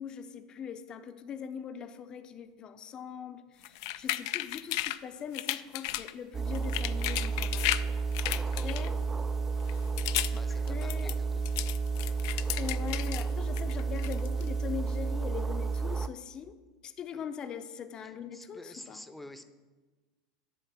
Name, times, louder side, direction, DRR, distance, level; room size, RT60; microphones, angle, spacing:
voice 1, 0.0-8.9 10.7-11.1 12.6-19.0, left 7 dB, 35° left, 9 dB, 0.7 m, -41 dB
sound 1, 3.6-5.0 5.3-6.1 6.5-7.9 8.1-9.1 9.6-10.4 10.7-13.2 13.6-14.5, left 16 dB, 65° left, 0.3 m, -34 dB
sound 2, 6.3-16.1, right 4 dB, 20° right, 0.4 m, -31 dB
voice 2, 8.2-8.7 10.3-11.3 12.4-12.6 17.1-17.2 18.0-19.5, left 1 dB, 5° left, 9 dB, 0.8 m, -49 dB
11.0 x 4.2 x 7.3 m, 1.3 s
hypercardioid pair, 85°, 2 cm